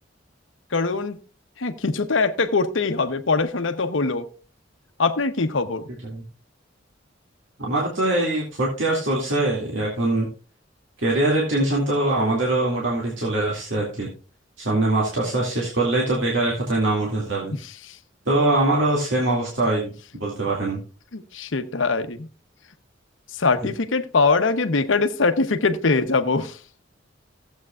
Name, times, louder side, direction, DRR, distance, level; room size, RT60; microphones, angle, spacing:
voice 1, 0.7-1.2 1.6-4.3 5.0-5.9 17.5-18.0 21.1-22.3 23.3-26.6, left 3 dB, 75° left, 10 dB, 0.9 m, -22 dB
voice 2, 7.6-10.3 11.0-14.1 14.6-17.5 18.3-19.9 20.2-20.8, right 2 dB, 70° right, -3 dB, 2.3 m, -22 dB
15.5 x 8.0 x 2.4 m, 0.36 s
head